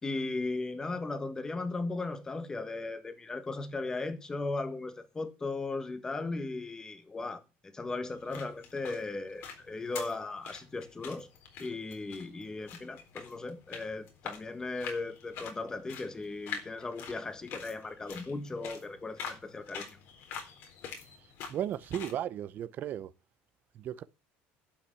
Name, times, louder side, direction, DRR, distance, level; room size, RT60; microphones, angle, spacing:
voice 1, 0.0-7.4 7.7-11.3 11.6-19.9, left 3 dB, 15° left, 1.6 m, -37 dB
sound 1, 8.1-22.2, left 6 dB, 55° left, 4.0 m, -46 dB
voice 2, 21.5-23.1 23.8-24.0, right 10 dB, 40° right, 0.8 m, -35 dB
12.0 x 5.9 x 8.8 m
cardioid pair, 145°, 5 cm